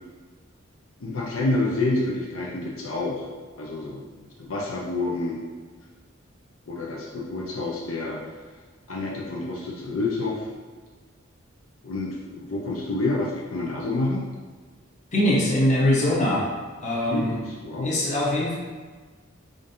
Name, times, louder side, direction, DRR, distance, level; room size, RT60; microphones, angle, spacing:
voice 1, 1.0-3.3 3.6-4.0 4.4-5.4 6.7-8.2 8.9-10.5 11.8-14.2 17.1-18.0, left 2 dB, 80° left, -3 dB, 0.7 m, -28 dB
voice 2, 15.1-16.5 16.8-17.4 17.8-18.5, left 1 dB, 35° left, -5 dB, 0.9 m, -22 dB
5.0 x 2.6 x 2.7 m, 1.5 s
head